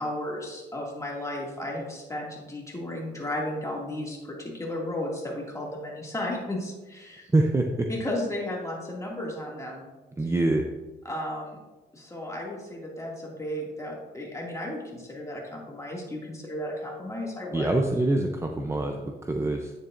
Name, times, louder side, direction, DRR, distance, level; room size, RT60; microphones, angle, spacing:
voice 1, 0.0-7.3 7.9-9.8 11.0-11.6 11.9-17.7, left 1 dB, 15° left, -2 dB, 2.2 m, -34 dB
voice 2, 7.3-7.9 10.2-10.6 17.5-19.7, right 2 dB, 15° right, 3 dB, 0.6 m, -25 dB
9.2 x 7.1 x 2.6 m, 1.2 s
cardioid pair, 90°, 20 cm